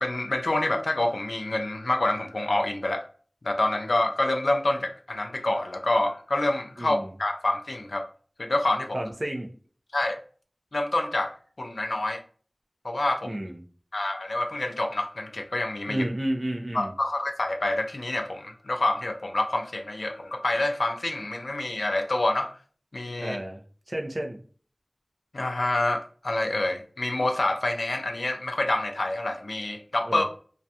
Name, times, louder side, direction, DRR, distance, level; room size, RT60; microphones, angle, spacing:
voice 1, 0.0-3.1 3.4-8.1 8.4-9.0 9.9-10.2 10.7-12.2 12.8-13.4 13.9-16.0 16.7-22.6 22.9-23.4 25.3-30.2, left 2 dB, 90° left, 5 dB, 0.3 m, -27 dB
voice 2, 6.8-7.1 8.9-9.5 13.2-13.6 15.9-16.9 23.2-24.4 30.0-30.2, right 1 dB, 45° right, 2 dB, 0.5 m, -31 dB
2.4 x 2.2 x 2.7 m, 0.43 s
wide cardioid pair, 45°, 0 cm